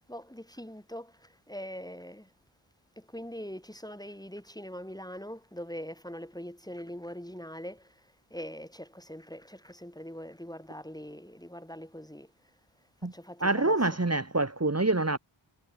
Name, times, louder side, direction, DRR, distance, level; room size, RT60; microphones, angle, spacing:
voice 1, 0.1-2.3 3.0-7.9 8.3-12.3 13.0-13.8, equal, 10° left, 3.1 m, -42 dB
voice 2, 13.4-15.2, right 2 dB, 30° right, 2.3 m, -26 dB
wide cardioid pair, 65°, 49 cm